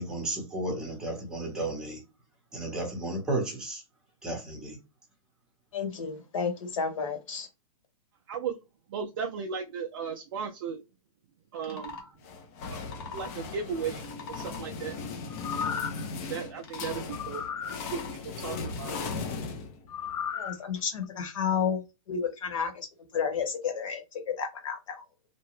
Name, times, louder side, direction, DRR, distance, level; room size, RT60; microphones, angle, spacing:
voice 1, 0.0-2.0 2.5-3.8 4.2-4.8, right 2 dB, 5° right, 0.9 m, -33 dB
voice 2, 5.7-7.5 20.4-21.8 22.1-22.7 23.1-24.0 24.4-25.0, left 6 dB, 60° left, 1.2 m, -31 dB
voice 3, 8.9-10.8 11.5-12.1 12.7-12.8 13.1-14.0 14.3-15.0 16.3-17.4 17.9-18.0 18.4-19.0, right 6 dB, 40° right, 0.4 m, -35 dB
sound 1, 11.5-12.1 12.7-13.3 14.0-14.6 15.3-15.9 16.6-17.0 17.6-18.2 18.7-19.2, left 5 dB, 45° left, 0.9 m, -42 dB
sound 2, 12.2-20.2, left 4 dB, 25° left, 0.4 m, -38 dB
sound 3, 15.3-16.1 17.1-17.8 19.9-20.6 21.0-21.1, left 7 dB, 80° left, 0.5 m, -34 dB
2.8 x 2.1 x 3.1 m
hypercardioid pair, 160°, 19 cm